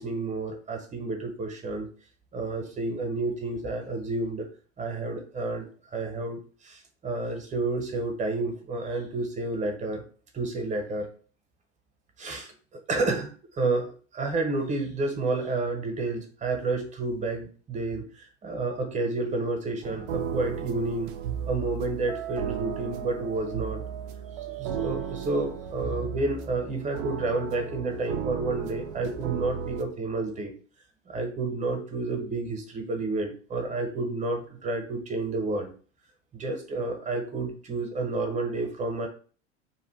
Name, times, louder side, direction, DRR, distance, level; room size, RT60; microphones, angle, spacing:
voice 1, 0.0-1.9 2.3-4.5 4.8-5.6 5.9-6.4 6.6-10.0 10.3-11.1 12.2-12.5 12.9-13.3 13.6-18.0 18.4-21.1 21.5-23.8 24.6-30.5 31.1-35.7 36.3-39.1, right 3 dB, 20° right, 4 dB, 1.0 m, -30 dB
sound 1, 19.8-29.8, right 7 dB, 50° right, 0.5 m, -35 dB
2.9 x 2.5 x 4.3 m, 0.41 s
figure-of-eight pair, 80°, 36 cm